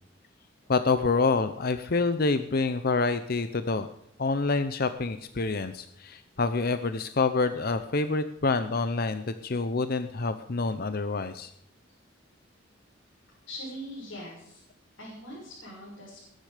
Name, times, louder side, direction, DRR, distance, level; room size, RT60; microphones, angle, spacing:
voice 1, 0.7-3.9 4.2-11.5, left 3 dB, 50° left, 10 dB, 0.7 m, -27 dB
voice 2, 13.5-14.6 15.0-16.2, equal, 90° left, -5 dB, 6.2 m, -42 dB
21.0 x 10.5 x 5.0 m, 0.81 s
head